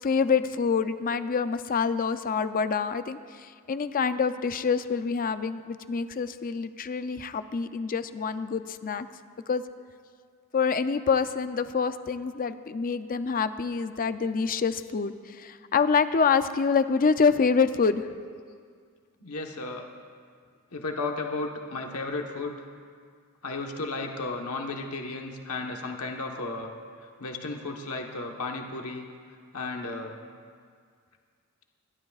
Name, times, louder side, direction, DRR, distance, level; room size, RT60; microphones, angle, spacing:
voice 1, 0.0-9.1 9.5-9.6 10.5-18.1, left 5 dB, 40° left, 11 dB, 0.5 m, -26 dB
voice 2, 19.2-19.9 20.7-22.7 23.4-26.7 27.2-29.0 29.5-30.1, left 3 dB, 75° left, 2 dB, 1.2 m, -34 dB
28.0 x 12.5 x 2.4 m, 2.1 s
head